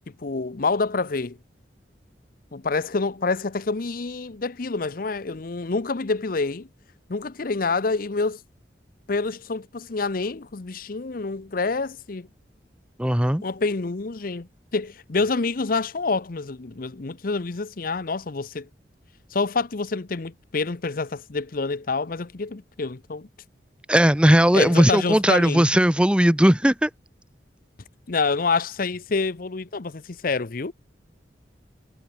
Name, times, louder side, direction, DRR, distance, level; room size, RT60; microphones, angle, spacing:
voice 1, 0.1-1.4 2.5-6.7 7.1-8.4 9.1-12.3 13.4-18.7 19.3-23.3 24.5-25.7 28.1-30.7, left 4 dB, 55° left, 0.8 m, -27 dB
voice 2, 13.0-13.4 23.9-26.9, equal, 5° right, 0.8 m, -18 dB
head